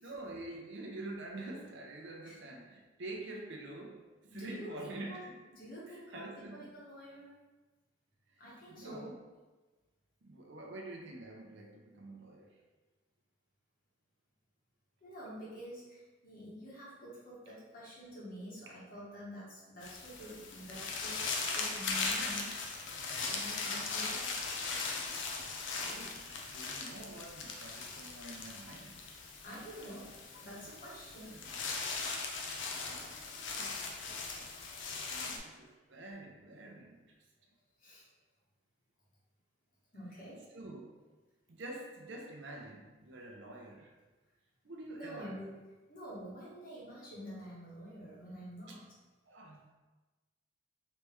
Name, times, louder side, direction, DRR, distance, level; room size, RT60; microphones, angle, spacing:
voice 1, 0.0-5.4 5.9-6.7 8.3-9.2 10.2-12.6 25.8-29.0 29.9-30.1 31.2-31.6 32.9-34.4 35.3-37.0 40.5-40.8 41.5-43.9 44.6-45.4 48.7-48.8 49.2-49.7, right 2 dB, 60° right, 0 dB, 0.6 m, -47 dB
voice 2, 4.3-5.2 5.5-7.3 8.4-9.1 15.0-21.2 21.5-22.5 23.2-24.3 29.4-30.1 30.3-31.3 35.1-35.4 37.8-38.0 39.9-40.4 45.0-45.5 45.9-48.8, equal, 45° left, -7 dB, 1.3 m, -47 dB
sound 1, 19.8-35.4, left 4 dB, 60° left, 0.5 m, -39 dB
3.3 x 3.1 x 3.1 m, 1.2 s
head